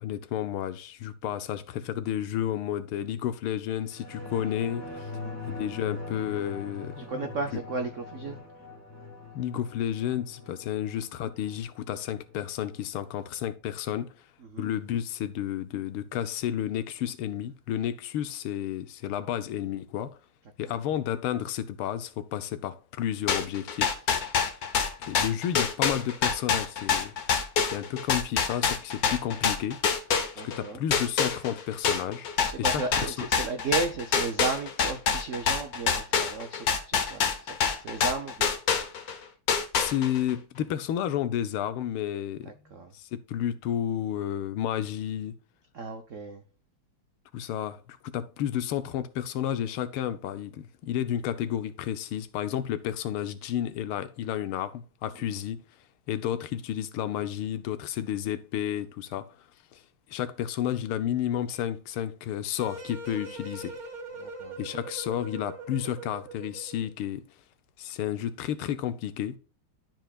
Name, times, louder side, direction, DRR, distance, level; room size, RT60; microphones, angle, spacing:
voice 1, 0.0-4.9 5.5-7.6 9.3-14.1 14.6-20.2 20.6-24.3 25.1-27.1 27.6-29.8 30.4-32.3 32.6-33.3 39.7-42.5 42.9-45.3 47.3-55.6 56.1-59.3 59.7-59.8 60.1-63.7 64.6-67.2 67.8-69.4, left 10 dB, 85° left, 1.6 m, -31 dB
sound 1, 3.9-12.9 13.2-13.3, left 3 dB, 10° left, 1.5 m, -42 dB
voice 2, 7.0-8.4 14.5-14.7 20.6-20.8 30.4-30.8 32.5-37.2 37.5-38.5 42.7-42.9 45.7-46.4 64.2-64.6, right 4 dB, 80° right, 0.6 m, -34 dB
sound 2, 23.3-30.6 30.9-39.2 39.5-40.3, left 6 dB, 55° left, 1.2 m, -26 dB
sound 3, 62.6-66.9, right 2 dB, 40° right, 1.3 m, -41 dB
12.5 x 4.5 x 2.3 m
omnidirectional pair, 2.3 m